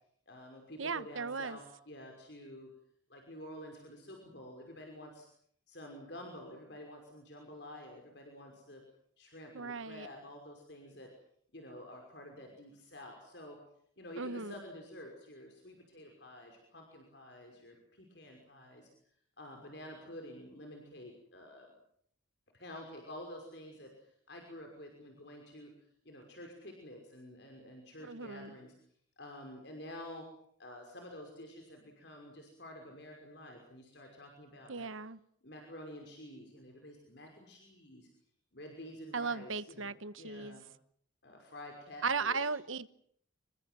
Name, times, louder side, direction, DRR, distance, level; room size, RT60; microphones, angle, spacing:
voice 1, 0.3-2.7 3.1-5.3 5.7-8.8 9.2-11.1 11.5-13.6 14.0-18.9 19.4-21.7 22.5-25.7 26.0-28.7 29.2-30.2 30.6-34.9 35.4-38.1 38.5-40.7 41.2-42.5, left 1 dB, 55° left, 2 dB, 5.8 m, -49 dB
voice 2, 0.8-1.6 9.5-10.1 14.2-14.5 28.0-28.5 34.7-35.2 39.1-40.6 42.0-42.9, right 4 dB, 80° right, 14 dB, 1.2 m, -37 dB
26.5 x 24.0 x 7.7 m, 0.65 s
head